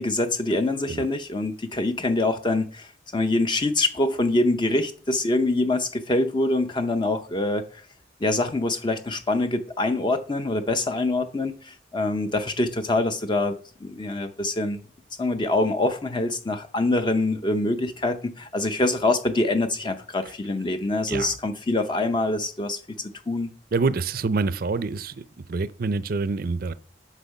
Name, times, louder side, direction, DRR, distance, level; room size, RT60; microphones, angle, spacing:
voice 1, 0.0-7.8 8.2-13.6 13.8-14.8 15.2-22.8 23.3-23.5, left 2 dB, 25° left, 0.6 m, -25 dB
voice 2, 23.7-25.2 25.5-26.7, right 4 dB, 50° right, 0.5 m, -26 dB
8.2 x 6.4 x 5.3 m
head